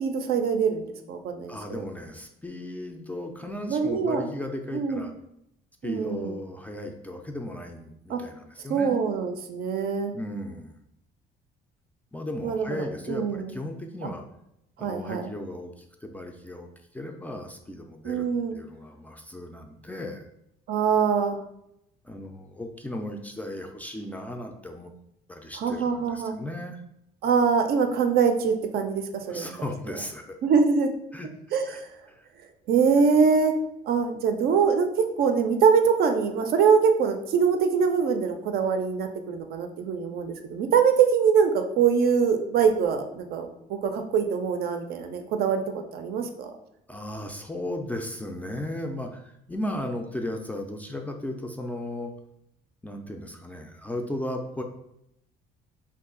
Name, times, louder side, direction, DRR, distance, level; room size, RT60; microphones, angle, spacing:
voice 1, 0.0-1.8 3.7-4.3 4.7-5.1 5.8-6.3 8.1-8.2 8.7-10.1 12.4-13.5 14.0-14.1 14.8-15.3 18.0-18.5 20.7-21.4 25.6-26.3 27.2-29.5 30.4-30.9 31.5-31.9 32.7-33.6 33.9-34.9 35.2-45.6 45.9-46.5, right 6 dB, 65° right, 6 dB, 0.5 m, -23 dB
voice 2, 1.5-5.1 5.8-8.9 10.1-10.7 12.1-14.3 14.8-18.3 18.5-20.3 22.0-24.9 25.3-26.8 29.3-30.4 31.1-31.3 31.7-31.8 32.1-32.3 46.9-52.1 52.8-54.6, left 1 dB, 10° left, 3 dB, 0.3 m, -36 dB
2.6 x 2.3 x 3.7 m, 0.80 s
cardioid pair, 110°, 17 cm